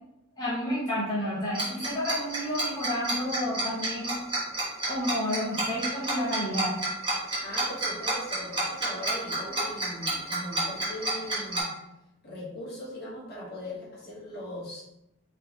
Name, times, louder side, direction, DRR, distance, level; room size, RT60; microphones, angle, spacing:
voice 1, 0.4-4.2 4.9-6.7, equal, 20° left, -9 dB, 0.9 m, -30 dB
Tick-tock, 1.5-11.6, right 2 dB, 25° right, 1.1 m, -29 dB
voice 2, 7.4-11.7 12.2-14.8, left 1 dB, 50° left, -6 dB, 1.4 m, -39 dB
4.2 x 3.0 x 2.7 m, 0.86 s
head